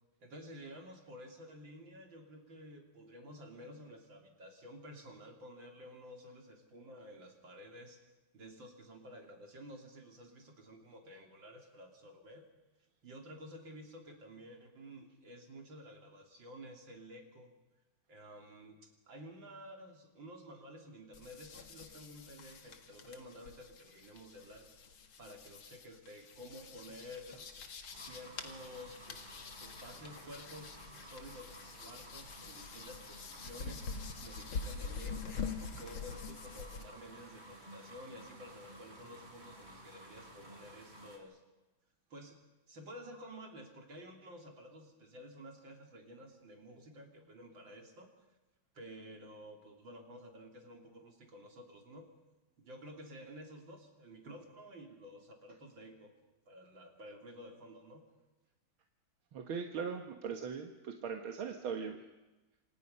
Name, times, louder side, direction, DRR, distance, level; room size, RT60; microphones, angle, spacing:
voice 1, 0.2-8.0 8.3-12.5 13.0-17.5 18.1-24.7 25.2-27.5 27.9-29.2 29.6-35.4 35.7-41.4 42.1-42.4 42.7-48.1 48.7-52.1 52.6-56.1 56.5-58.1, equal, 70° right, 3 dB, 4.0 m, -52 dB
sound 1, 21.1-36.8, left 5 dB, 80° left, 2.6 m, -46 dB
sound 2, 27.9-41.2, right 1 dB, 20° right, 4.2 m, -54 dB
voice 2, 59.3-62.0, right 6 dB, 85° right, 5 dB, 2.2 m, -40 dB
27.5 x 27.0 x 5.6 m, 1.1 s
omnidirectional pair, 2.2 m